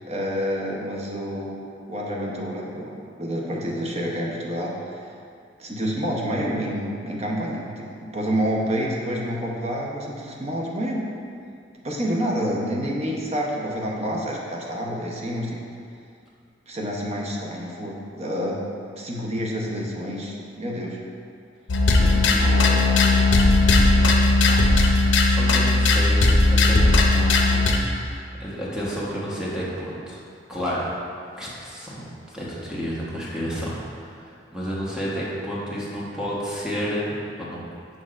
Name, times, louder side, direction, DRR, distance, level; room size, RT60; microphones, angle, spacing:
voice 1, 0.1-1.6 1.9-5.1 5.6-11.0 11.8-15.6 16.7-18.6 19.0-21.0, equal, 35° right, -2 dB, 0.8 m, -28 dB
sound 1, 21.7-27.8, left 2 dB, 75° left, 0.6 m, -17 dB
voice 2, 21.9-26.8 27.1-27.7 28.0-30.2 30.5-30.9 31.4-37.2 37.5-37.7, equal, 5° right, -7 dB, 1.1 m, -32 dB
6.4 x 6.1 x 2.5 m, 2.4 s
head